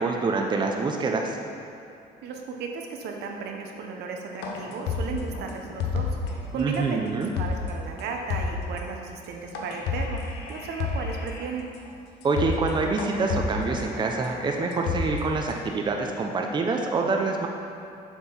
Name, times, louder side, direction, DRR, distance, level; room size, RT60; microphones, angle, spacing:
voice 1, 0.0-1.4 6.5-7.3 12.2-17.5, right 3 dB, 25° right, 2 dB, 0.6 m, -26 dB
voice 2, 2.2-7.1 7.4-11.7, right 5 dB, 75° right, 2 dB, 0.9 m, -35 dB
sound 1, 4.4-6.4 6.7-6.8 7.2-7.7 8.0-8.1 8.3-8.8 9.5-11.4 11.8-11.9 12.2-12.7 13.0-15.5, left 4 dB, 85° left, 0.9 m, -31 dB
7.0 x 4.5 x 5.4 m, 2.7 s
cardioid pair, 110°, 17 cm